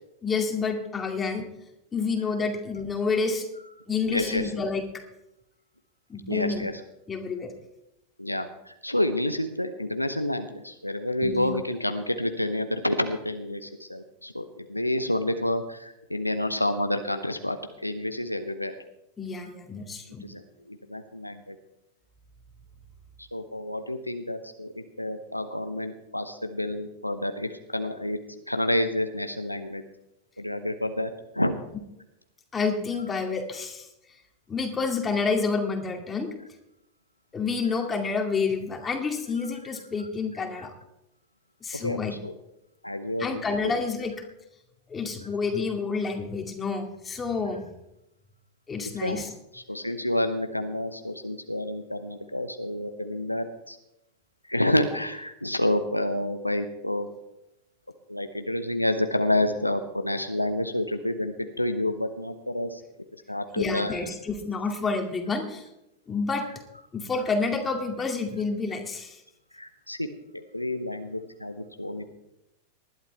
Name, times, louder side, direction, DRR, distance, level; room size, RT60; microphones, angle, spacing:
voice 1, 0.2-1.5 1.9-3.5 3.9-5.0 6.1-6.7 7.1-7.5 11.2-11.5 19.2-20.3 32.5-33.9 34.5-36.3 37.3-40.7 41.6-42.2 43.2-44.1 44.9-47.6 48.7-49.3 63.6-65.7 66.1-66.5 66.9-69.2, left 4 dB, 15° left, 4 dB, 2.2 m, -29 dB
voice 2, 4.0-4.5 6.3-6.8 8.2-17.6 17.8-18.7 20.2-20.4 20.7-21.5 23.2-29.8 30.4-31.6 41.7-42.3 42.8-43.7 48.8-49.2 49.5-53.8 54.5-57.1 58.1-62.8 63.3-64.0 69.5-70.1 70.3-72.0, left 1 dB, 85° left, 8 dB, 0.9 m, -29 dB
19.5 x 12.0 x 3.4 m, 0.86 s
figure-of-eight pair, 90°, 0 cm